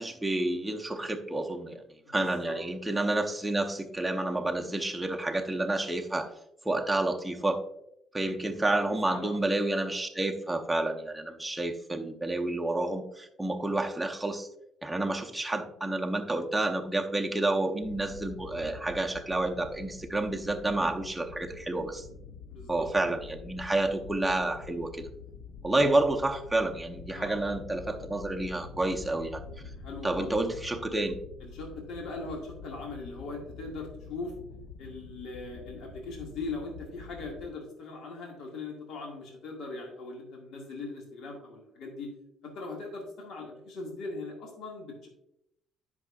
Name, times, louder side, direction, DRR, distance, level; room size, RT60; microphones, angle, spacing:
voice 1, 0.0-1.8 2.1-6.3 6.6-7.6 8.1-14.5 14.8-22.1 22.7-25.1 25.6-29.4 30.0-31.2, right 2 dB, 5° right, 2 dB, 0.7 m, -29 dB
voice 2, 2.1-2.6 8.8-9.4 22.5-23.2 27.1-27.4 29.8-30.3 31.4-34.3 34.8-42.1 42.4-45.1, left 3 dB, 65° left, -1 dB, 1.9 m, -40 dB
sound 1, 17.8-37.5, left 5 dB, 85° left, 0.8 m, -46 dB
11.0 x 6.0 x 2.4 m, 0.79 s
cardioid pair, 160°, 0 cm